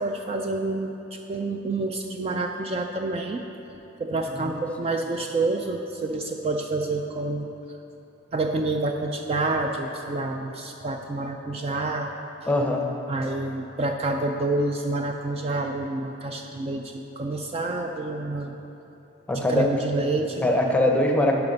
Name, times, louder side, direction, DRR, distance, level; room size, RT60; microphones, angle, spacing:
voice 1, 0.0-3.4 4.0-7.5 8.3-12.1 13.1-18.6 19.3-20.5, right 2 dB, 30° right, 3 dB, 0.3 m, -28 dB
voice 2, 12.5-12.9 19.3-19.7 20.4-21.4, left 1 dB, 5° left, 1 dB, 0.7 m, -22 dB
10.5 x 5.9 x 5.3 m, 3.0 s
head